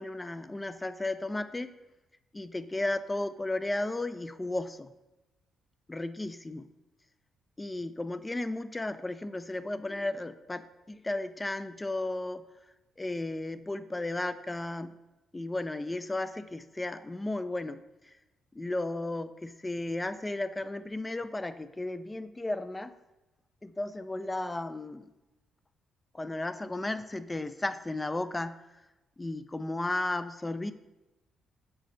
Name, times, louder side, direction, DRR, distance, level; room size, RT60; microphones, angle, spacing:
voice 1, 0.0-1.7 2.3-4.9 5.9-6.7 7.6-12.5 13.0-14.9 15.3-18.2 18.5-22.9 23.6-25.1 26.1-28.6 29.2-30.7, left 2 dB, 15° left, 13 dB, 0.3 m, -34 dB
6.7 x 4.1 x 3.8 m, 1.0 s
cardioid pair, 90°, 0 cm